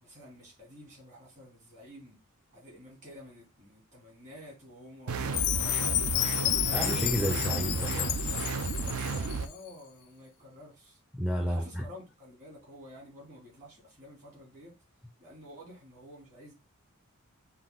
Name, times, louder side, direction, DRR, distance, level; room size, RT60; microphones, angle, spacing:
voice 1, 0.0-2.2 2.5-6.7 9.0-11.0 11.5-14.7 15.2-16.5, equal, 35° right, 2.7 m, -50 dB
sound 1, 5.1-9.5, right 4 dB, 70° right, 0.5 m, -33 dB
Chime, 5.3-9.4, left 15 dB, 70° left, 0.3 m, -31 dB
voice 2, 6.7-8.5 11.1-11.8, equal, 5° right, 0.4 m, -32 dB
5.5 x 2.6 x 3.7 m
head